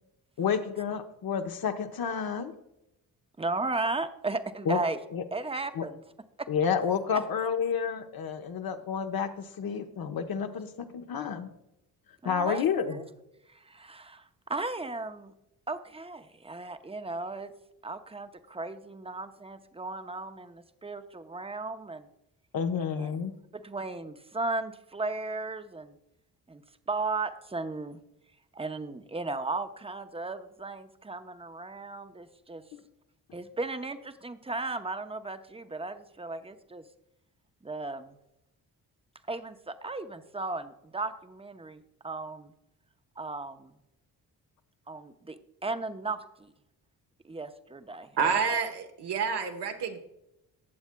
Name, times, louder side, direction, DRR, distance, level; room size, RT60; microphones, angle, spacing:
voice 1, 0.4-2.5 4.7-4.8 5.1-5.2 5.7-5.8 6.5-11.5 12.2-13.0 22.5-23.4 32.7-32.8, left 7 dB, 60° left, 6 dB, 1.0 m, -30 dB
voice 2, 3.4-5.0 5.3-6.0 6.4-6.5 7.1-7.2 12.2-13.0 13.5-15.3 15.7-17.5 17.8-22.1 22.9-23.3 23.5-26.0 26.5-28.0 28.5-32.6 33.3-36.8 37.6-38.2 39.3-42.5 43.2-43.7 44.9-46.5 47.2-48.6, right 3 dB, 15° right, 9 dB, 0.7 m, -36 dB
voice 3, 48.2-50.0, right 5 dB, 70° right, 5 dB, 1.2 m, -28 dB
17.0 x 7.1 x 2.3 m, 0.86 s
supercardioid pair, 55°, 41 cm